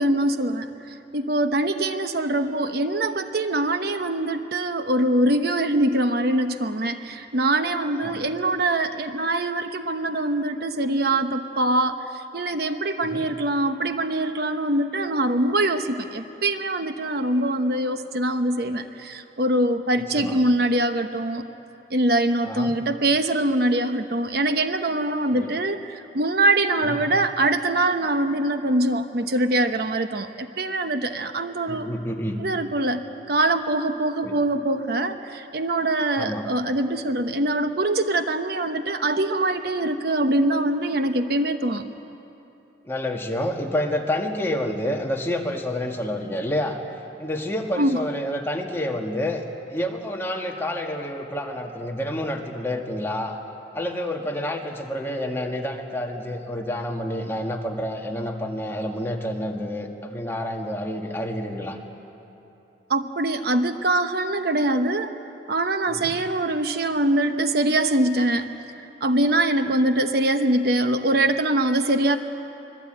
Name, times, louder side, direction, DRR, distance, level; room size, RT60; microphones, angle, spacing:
voice 1, 0.0-21.5 21.9-31.9 32.4-41.9 47.8-48.0 62.9-65.1 65.5-68.5 69.0-72.2, right 1 dB, 55° right, 8 dB, 1.0 m, -23 dB
voice 2, 20.0-20.4 22.4-22.7 25.3-25.5 26.8-27.0 31.6-32.4 34.2-34.3 36.2-36.4 42.9-46.8 47.2-49.4 49.7-53.4 53.7-61.8 65.9-66.2, left 1 dB, 15° left, 1 dB, 1.8 m, -28 dB
25.0 x 21.0 x 9.0 m, 2.9 s
head